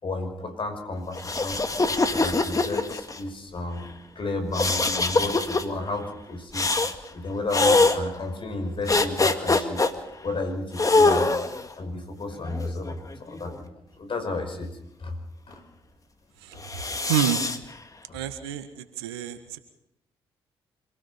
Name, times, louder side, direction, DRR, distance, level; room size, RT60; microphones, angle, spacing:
voice 1, 0.0-6.7 7.1-9.8 10.2-11.3 11.8-13.7 14.0-14.7 15.0-15.2 15.5-15.6 18.1-18.2, left 2 dB, 45° left, 6 dB, 5.4 m, -32 dB
sound 1, 1.1-3.2 4.5-5.6 6.5-7.0 7.5-8.0 8.9-9.9 10.8-11.6 12.4-13.6 16.6-17.6, left 3 dB, 25° left, 2.0 m, -23 dB
voice 2, 17.1-17.4 18.1-19.6, right 10 dB, 85° right, 10 dB, 1.5 m, -28 dB
26.5 x 17.5 x 5.6 m, 0.84 s
hypercardioid pair, 45°, 13 cm